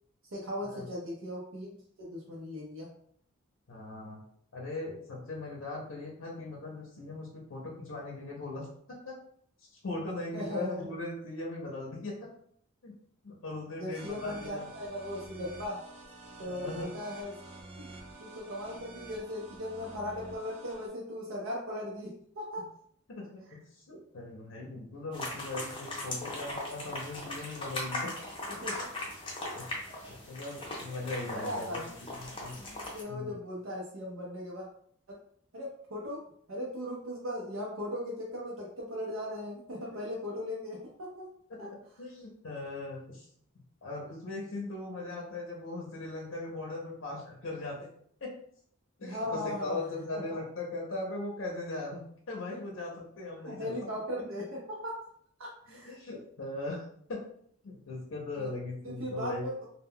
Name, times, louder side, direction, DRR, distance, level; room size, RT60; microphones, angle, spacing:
voice 1, 0.3-1.7 2.0-2.9 10.3-10.9 13.8-15.8 16.4-17.4 17.8-17.9 18.2-22.7 28.6-28.9 29.4-29.5 31.3-31.9 32.9-34.7 35.1-35.2 35.5-36.2 36.5-41.3 41.6-41.7 49.0-49.8 50.1-50.2 53.4-55.0 55.4-56.0 58.3-58.5 58.8-59.7, left 1 dB, 85° right, -4 dB, 0.6 m, -38 dB
voice 2, 3.7-4.2 4.5-9.2 9.7-12.3 12.8-12.9 13.2-14.7 16.4-16.9 23.1-23.4 23.7-28.1 29.5-29.7 30.1-32.6 33.1-33.3 41.5-41.6 42.0-43.3 43.8-47.8 48.2-48.3 49.0-52.0 52.3-53.8 55.7-56.8 57.1-57.2 57.6-59.4, left 2 dB, 80° left, -2 dB, 0.6 m, -39 dB
sound 1, 13.9-20.9, right 2 dB, 25° right, 0.4 m, -49 dB
sound 2, 25.1-33.0, left 1 dB, 25° left, 0.5 m, -39 dB
2.1 x 2.1 x 3.5 m, 0.64 s
head